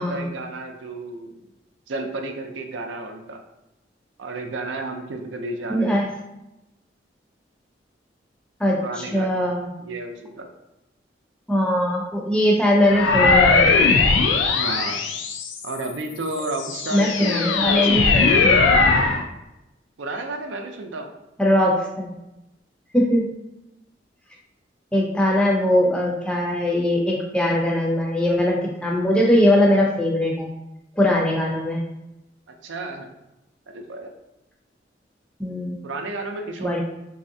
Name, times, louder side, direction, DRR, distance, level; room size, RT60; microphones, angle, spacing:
voice 1, 0.0-1.4 1.9-3.4 4.2-5.9 8.8-9.5 9.8-10.5 14.5-15.2 15.6-18.5 20.0-21.1 32.6-33.1 33.7-34.1 35.8-36.8, right 2 dB, 90° right, 4 dB, 0.5 m, -32 dB
voice 2, 5.7-6.0 8.6-9.7 11.5-13.8 16.9-18.7 21.4-22.1 22.9-23.3 24.9-30.5 31.0-31.8 35.4-35.8 36.6-36.8, left 1 dB, 5° left, -2 dB, 0.5 m, -21 dB
sound 1, 12.9-15.8 16.4-19.2, left 4 dB, 85° left, 0.4 m, -19 dB
3.2 x 2.7 x 2.6 m, 0.92 s
head